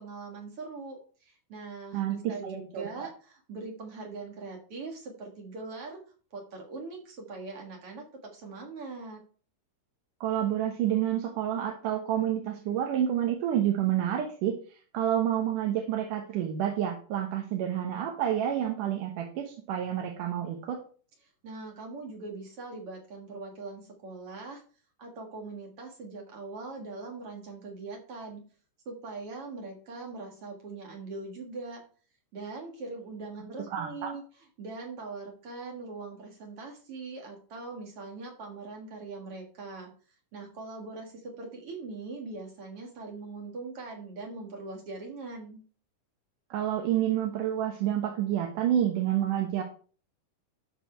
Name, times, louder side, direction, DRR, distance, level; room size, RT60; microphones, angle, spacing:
voice 1, 0.0-6.0 6.3-9.2 21.4-24.6 25.0-28.4 28.9-31.8 32.3-34.2 34.6-39.9 40.3-45.6, right 3 dB, 50° right, 1 dB, 2.4 m, -41 dB
voice 2, 1.9-3.1 10.2-14.6 14.9-20.8 33.7-34.2 46.5-49.6, right 10 dB, 75° right, 2 dB, 2.6 m, -29 dB
12.5 x 4.7 x 4.4 m, 0.40 s
omnidirectional pair, 3.8 m